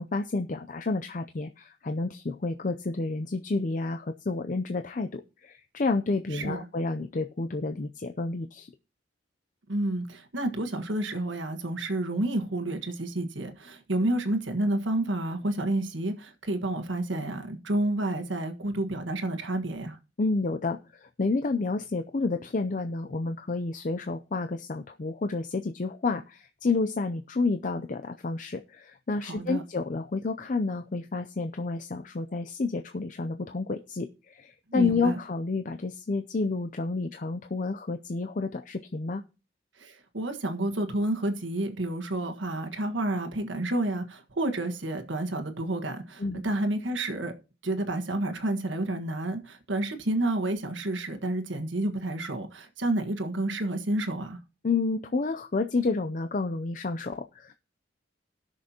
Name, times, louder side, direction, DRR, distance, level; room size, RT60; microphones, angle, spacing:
voice 1, 0.0-8.7 20.2-39.2 46.2-46.4 54.6-57.5, left 3 dB, 45° left, 0.5 m, -30 dB
voice 2, 6.3-6.6 9.7-20.0 29.3-29.6 34.7-35.1 39.8-47.3 47.6-54.4, right 1 dB, 85° right, 1.5 m, -30 dB
19.0 x 6.5 x 2.9 m
head